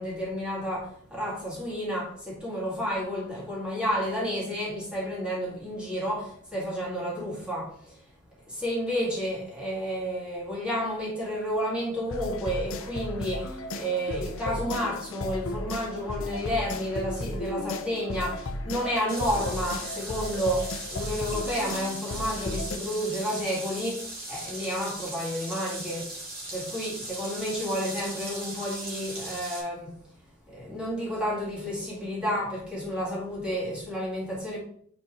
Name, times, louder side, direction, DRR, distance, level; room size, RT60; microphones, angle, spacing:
voice 1, 0.0-8.0 8.5-26.1 26.5-29.9 30.5-34.6, equal, 5° right, 2.2 m, -31 dB
sound 1, 12.1-22.8, left 1 dB, 65° left, 0.7 m, -35 dB
sound 2, 19.1-29.6, right 2 dB, 45° right, 2.1 m, -38 dB
4.9 x 4.5 x 4.8 m
head